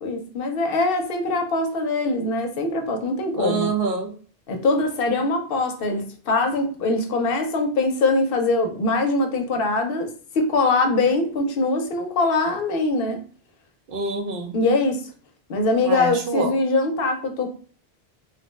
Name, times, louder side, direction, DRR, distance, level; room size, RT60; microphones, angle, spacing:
voice 1, 0.0-3.7 4.5-13.2 14.5-15.0 15.5-17.5, left 3 dB, 65° left, 0.7 m, -22 dB
voice 2, 3.4-4.1 13.9-14.5 15.8-16.5, right 4 dB, 65° right, 0.7 m, -25 dB
2.8 x 2.1 x 3.1 m
omnidirectional pair, 1.1 m